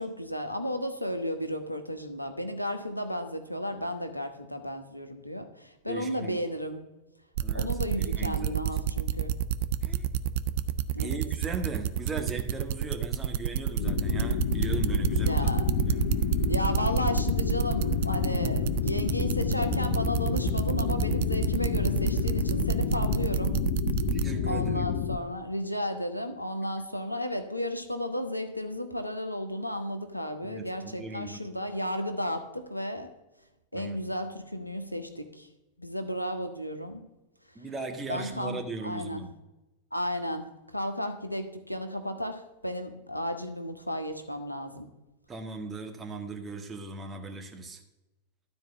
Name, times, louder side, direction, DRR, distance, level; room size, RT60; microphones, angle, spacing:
voice 1, 0.0-6.8 7.5-9.3 10.9-11.2 15.2-15.7 16.4-23.6 24.5-33.1 33.7-35.5 35.8-37.0 38.1-39.2 39.9-44.9, equal, 90° left, 8 dB, 1.1 m, -33 dB
voice 2, 5.9-6.4 7.4-7.7 8.0-8.8 9.8-10.1 11.0-16.1 24.1-24.8 30.4-31.4 33.7-34.0 37.5-39.3 45.3-47.8, right 3 dB, 20° right, 3 dB, 1.6 m, -38 dB
sound 1, 7.4-24.2, right 11 dB, 55° right, 0.5 m, -28 dB
sound 2, 13.8-25.2, left 9 dB, 55° left, 0.6 m, -29 dB
sound 3, 14.2-23.2, right 3 dB, 70° right, 3.1 m, -46 dB
12.5 x 4.5 x 8.3 m, 1.0 s
figure-of-eight pair, 90°, 0 cm